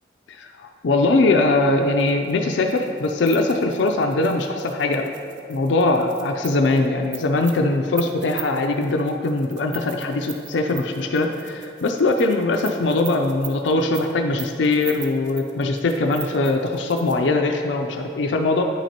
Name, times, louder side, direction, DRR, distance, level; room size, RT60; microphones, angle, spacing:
voice 1, 0.3-5.1 5.5-18.6, left 2 dB, 85° left, 4 dB, 0.4 m, -21 dB
sound 1, 1.9-17.3, right 9 dB, 85° right, 0.6 m, -40 dB
9.1 x 6.0 x 2.9 m, 2.5 s
head